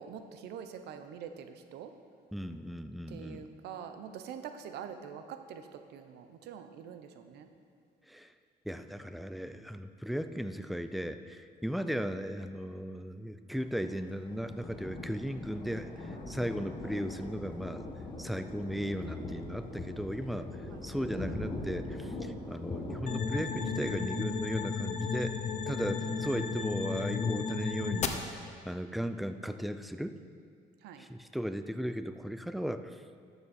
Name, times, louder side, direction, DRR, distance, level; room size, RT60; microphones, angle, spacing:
voice 1, 0.0-1.9 3.1-7.5 11.8-11.9 18.8-19.0 20.7-20.8 26.0-26.6 30.8-31.1, right 7 dB, 80° right, 8 dB, 0.7 m, -45 dB
voice 2, 2.3-3.5 8.1-8.3 8.7-17.8 18.2-20.5 20.8-30.2 31.0-33.0, equal, ahead, 10 dB, 0.4 m, -36 dB
Thunder, 13.5-25.9, left 2 dB, 25° left, 1.4 m, -42 dB
sound 1, 23.1-28.1, left 6 dB, 45° left, 0.7 m, -34 dB
12.0 x 7.1 x 4.3 m, 2.2 s
cardioid pair, 110°, 17 cm